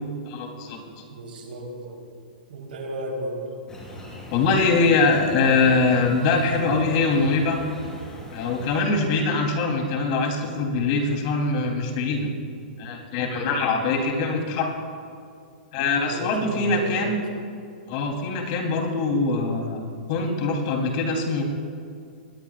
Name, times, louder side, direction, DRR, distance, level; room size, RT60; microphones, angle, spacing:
voice 1, 0.3-0.8 4.3-7.6 8.3-12.3 12.8-14.7 15.7-17.2 17.9-21.4, left 3 dB, 45° left, 0 dB, 3.5 m, -23 dB
voice 2, 1.1-2.1 2.5-3.5 6.4-6.7 16.0-17.2 18.7-18.8, right 2 dB, 80° right, 0 dB, 4.0 m, -34 dB
sound 1, 3.7-8.8, equal, 10° left, 3.7 m, -40 dB
24.5 x 20.0 x 2.5 m, 2.3 s
hypercardioid pair, 150°, 5 cm